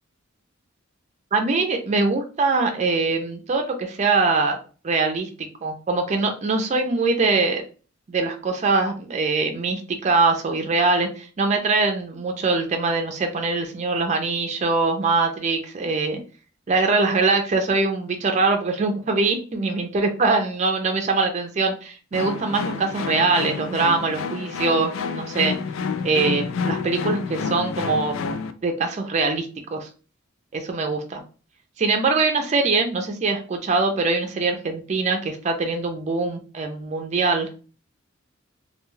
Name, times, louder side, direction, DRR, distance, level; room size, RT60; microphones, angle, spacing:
voice 1, 1.3-4.6 4.8-7.6 8.1-16.2 16.7-25.6 26.0-28.2 28.6-29.9 30.5-31.2 31.8-37.5, right 3 dB, 35° right, 4 dB, 0.4 m, -23 dB
sound 1, 22.1-28.5, left 5 dB, 85° left, 0.3 m, -29 dB
2.3 x 2.2 x 3.0 m, 0.36 s
head